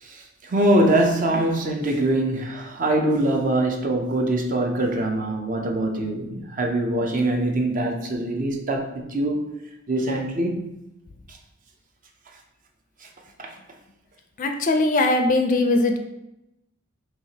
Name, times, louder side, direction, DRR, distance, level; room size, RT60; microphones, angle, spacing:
voice 1, 0.0-9.5 9.9-10.6 11.3-11.4 13.4-13.6, right 1 dB, 40° right, 0.5 m, -23 dB
voice 2, 14.4-16.0, left 2 dB, 35° left, 0.4 m, -20 dB
4.6 x 2.8 x 2.8 m
head